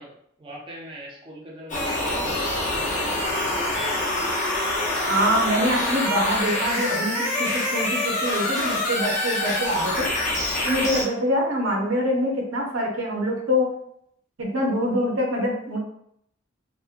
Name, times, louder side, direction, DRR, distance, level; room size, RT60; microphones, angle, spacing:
voice 1, 0.0-2.8, right 1 dB, 25° right, -3 dB, 0.4 m, -42 dB
sound 1, 1.7-11.0, left 1 dB, 40° left, 0.6 m, -25 dB
voice 2, 5.1-10.1 10.6-13.7 14.4-15.8, equal, 75° right, 0 dB, 0.6 m, -25 dB
2.7 x 2.1 x 2.4 m, 0.71 s
head